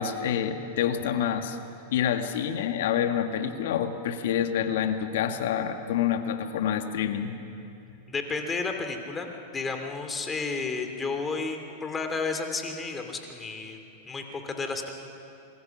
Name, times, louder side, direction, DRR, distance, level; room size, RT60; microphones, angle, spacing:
voice 1, 0.0-1.6 1.9-7.4, left 9 dB, 65° left, 7 dB, 1.7 m, -27 dB
voice 2, 8.1-14.9, left 4 dB, 20° left, 5 dB, 2.9 m, -32 dB
27.5 x 21.5 x 6.1 m, 2.7 s
hypercardioid pair, 100°, 0 cm